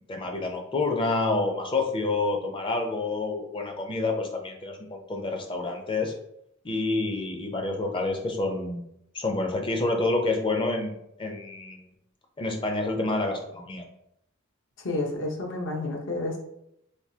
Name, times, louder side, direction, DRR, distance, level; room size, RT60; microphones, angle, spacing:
voice 1, 0.1-6.1 6.6-8.8 9.1-11.9 12.4-13.8, left 2 dB, 25° left, 3 dB, 0.5 m, -28 dB
voice 2, 14.8-16.4, left 2 dB, 65° left, 0 dB, 0.8 m, -30 dB
3.5 x 2.7 x 2.7 m, 0.79 s
head